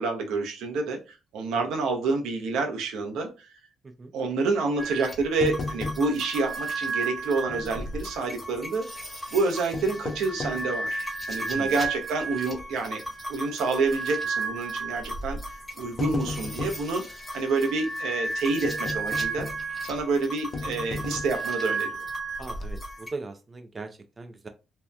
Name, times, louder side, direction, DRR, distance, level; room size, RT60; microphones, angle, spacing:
voice 1, 0.0-3.5 4.1-8.9 9.3-13.0 13.3-19.5 19.8-22.0, right 3 dB, 85° right, 3 dB, 0.6 m, -28 dB
sound 1, 4.8-23.1, right 3 dB, ahead, 1.0 m, -34 dB
sound 2, 5.4-6.4 6.7-6.8 7.5-8.1 9.5-10.7 11.3-11.4 12.0-12.3 12.6-12.7 13.8-14.1 15.0-15.2 15.6-16.9 18.6-19.8 20.5-21.5 22.0-22.2 22.5-22.6, left 3 dB, 45° left, 0.5 m, -35 dB
voice 2, 11.5-11.8 22.4-24.5, right 3 dB, 30° right, 6 dB, 0.3 m, -40 dB
2.7 x 2.1 x 2.3 m, 0.30 s
cardioid pair, 90°, 0 cm